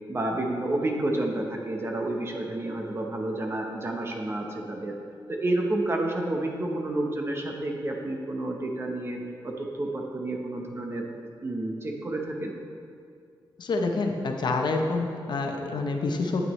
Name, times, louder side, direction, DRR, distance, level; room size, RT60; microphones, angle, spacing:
voice 1, 0.1-5.0 5.3-9.2 9.4-11.1 11.4-12.5, right 1 dB, 30° right, 1 dB, 0.8 m, -30 dB
voice 2, 13.6-16.5, left 3 dB, 60° left, 3 dB, 0.7 m, -27 dB
9.2 x 9.1 x 3.1 m, 2.3 s
wide cardioid pair, 170°, 9 cm